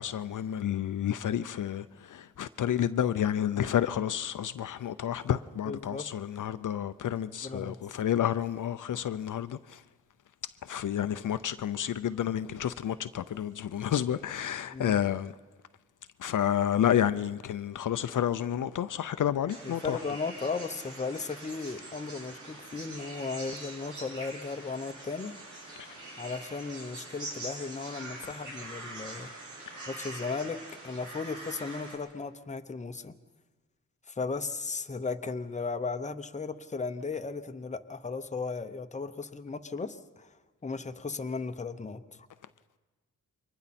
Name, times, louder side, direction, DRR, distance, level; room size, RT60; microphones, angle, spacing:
voice 1, 0.0-1.8 2.1-9.6 10.7-15.3 16.2-20.0, left 10 dB, 65° left, 0.5 m, -30 dB
voice 2, 5.7-6.1 7.4-7.8 14.7-15.0 19.6-25.4 26.2-29.3 29.9-33.2 34.1-40.3 40.6-42.3, left 4 dB, 20° left, 0.8 m, -36 dB
sound 1, 19.5-31.9, right 2 dB, 65° right, 6.8 m, -44 dB
28.5 x 23.5 x 4.2 m
wide cardioid pair, 140°, 33 cm